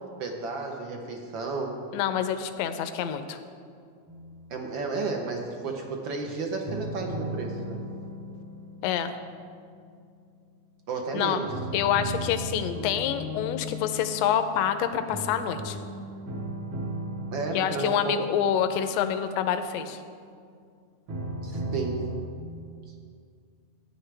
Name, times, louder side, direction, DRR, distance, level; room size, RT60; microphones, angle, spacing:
voice 1, 0.2-1.8 4.5-7.8 10.9-11.5 17.3-18.2 21.4-22.0, right 3 dB, 70° right, 2 dB, 1.1 m, -32 dB
voice 2, 1.9-3.4 8.8-9.1 11.1-11.4 11.7-15.8 17.5-20.0, left 9 dB, 75° left, 9 dB, 1.7 m, -27 dB
sound 1, 4.1-5.3 6.7-10.7 11.5-20.3 21.1-22.2, right 1 dB, 55° right, 1.6 m, -37 dB
14.5 x 9.9 x 3.4 m, 2.2 s
omnidirectional pair, 3.3 m